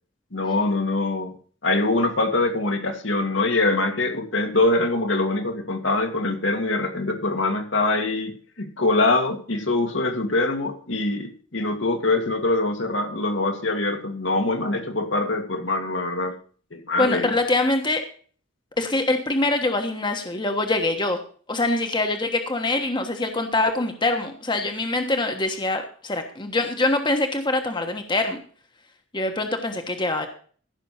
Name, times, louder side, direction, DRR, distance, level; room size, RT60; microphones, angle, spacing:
voice 1, 0.3-1.3 1.6-16.4 16.7-17.3, left 2 dB, 70° left, 4 dB, 2.0 m, -24 dB
voice 2, 17.0-18.0 18.8-21.2 21.5-28.4 29.1-30.3, left 2 dB, 25° left, 5 dB, 1.3 m, -24 dB
15.0 x 6.3 x 5.6 m, 0.44 s
head